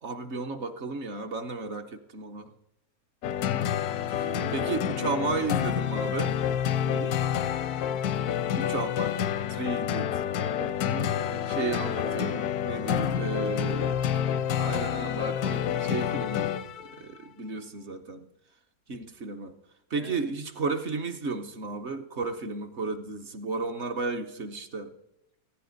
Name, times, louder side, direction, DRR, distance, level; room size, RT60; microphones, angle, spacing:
voice 1, 0.0-2.5 4.1-6.4 8.6-9.2 9.5-10.2 11.5-13.9 14.6-18.3 18.9-19.5 19.9-24.9, right 4 dB, 55° right, 7 dB, 1.1 m, -33 dB
sound 1, 3.2-17.0, left 9 dB, 85° left, 1.2 m, -28 dB
voice 2, 4.3-5.4 6.8-7.3 10.4-11.5 12.0-12.3 12.9-13.3 19.9-20.3, right 5 dB, 75° right, 8 dB, 0.3 m, -42 dB
15.0 x 15.0 x 4.0 m, 0.84 s
omnidirectional pair, 1.6 m